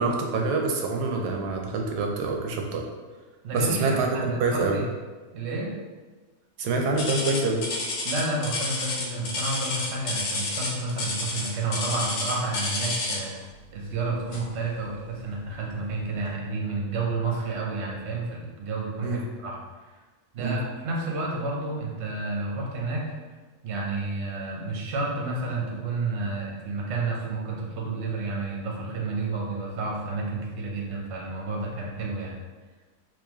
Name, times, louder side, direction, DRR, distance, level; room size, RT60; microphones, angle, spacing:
voice 1, 0.0-2.8 3.5-4.8 6.6-7.7 19.0-19.2 20.4-20.6, right 3 dB, 90° right, 1 dB, 1.1 m, -26 dB
voice 2, 3.4-4.8 5.3-5.7 8.0-13.3 13.7-19.9 20.3-23.0 23.6-32.3, right 3 dB, 55° right, -2 dB, 0.9 m, -30 dB
sound 1, 7.0-13.4 14.3-14.6 15.1-15.2 15.9-16.0, left 2 dB, 75° left, 1.2 m, -30 dB
3.8 x 2.8 x 3.0 m, 1.3 s
omnidirectional pair, 1.7 m